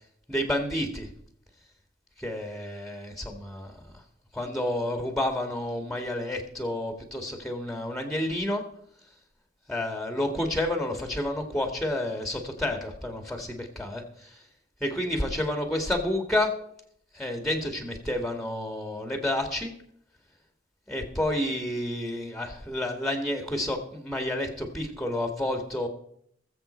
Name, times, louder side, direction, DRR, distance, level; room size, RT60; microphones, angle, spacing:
voice 1, 0.3-1.1 2.2-3.7 4.3-8.6 9.7-14.3 14.8-16.5 17.1-19.7 20.9-25.9, left 1 dB, ahead, 4 dB, 1.9 m, -30 dB
20.5 x 7.6 x 4.4 m, 0.69 s
head